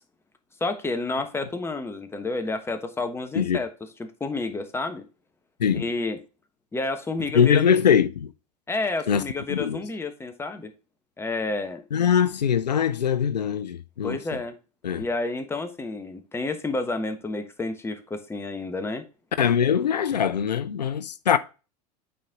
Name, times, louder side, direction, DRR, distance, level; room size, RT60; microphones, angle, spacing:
voice 1, 0.6-3.7 4.0-5.0 5.7-6.2 6.7-7.8 8.7-10.7 11.2-11.8 14.0-14.6 15.0-19.0, left 3 dB, 10° left, 1.2 m, -30 dB
voice 2, 7.3-8.3 9.1-9.2 9.5-9.8 11.9-14.2 14.8-15.0 19.4-21.4, left 8 dB, 85° left, 0.5 m, -22 dB
8.9 x 4.3 x 3.6 m
hypercardioid pair, 90°, 21 cm